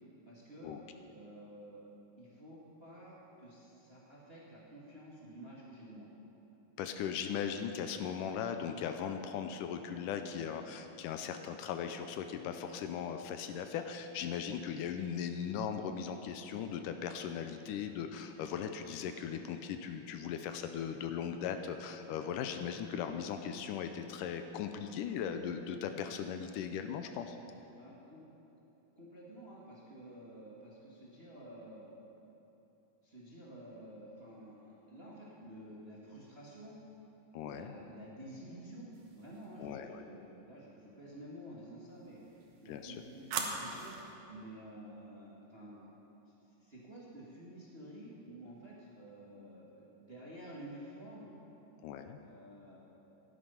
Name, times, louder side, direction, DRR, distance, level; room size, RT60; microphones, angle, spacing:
voice 1, 0.2-0.7 1.1-1.9 2.2-6.1 27.7-28.2 28.9-31.9 33.0-36.8 37.4-44.0 44.3-46.0 46.6-51.3 52.2-52.8, right 1 dB, 25° right, -6 dB, 1.4 m, -51 dB
voice 2, 6.8-27.4 37.3-37.7 39.6-40.0 42.7-43.0 51.8-52.2, left 8 dB, 80° left, 7 dB, 2.1 m, -38 dB
sound 1, 38.9-39.6 42.0-44.1, right 5 dB, 85° right, 2.9 m, -42 dB
15.0 x 11.5 x 5.7 m, 3.0 s
omnidirectional pair, 3.9 m